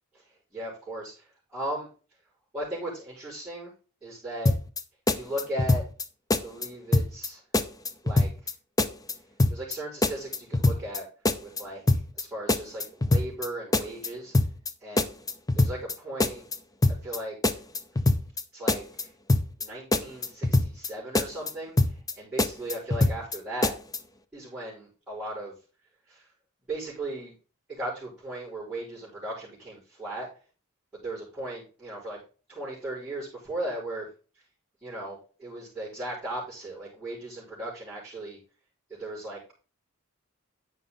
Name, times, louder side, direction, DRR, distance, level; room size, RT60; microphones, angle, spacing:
voice 1, 0.5-1.9 2.5-3.7 4.0-4.5 5.1-5.8 6.3-7.4 8.0-8.3 9.5-11.1 11.4-11.8 12.2-14.3 14.8-15.1 15.5-16.4 17.0-17.4 18.5-19.1 19.6-23.7 24.3-25.6 26.1-26.3 26.7-27.3 27.7-30.3 30.9-32.2 32.5-34.1 34.8-38.4 38.9-39.4, right 1 dB, 5° right, -12 dB, 5.3 m, -37 dB
sound 1, 4.5-4.8 5.1-6.0 6.3-6.7 6.9-7.3 7.5-8.5 8.8-9.1 9.4-9.8 10.0-11.0 11.3-11.6 11.9-12.2 12.5-13.5 13.7-14.1 14.3-14.7 15.0-15.9 16.2-16.6 16.8-17.2 17.4-18.4 18.7-19.0 19.3-19.7 19.9-20.9 21.2-21.5 21.8-22.1 22.4-23.4 23.6-24.0, left 2 dB, 15° left, 0.7 m, -24 dB
10.0 x 6.9 x 3.9 m, 0.35 s
head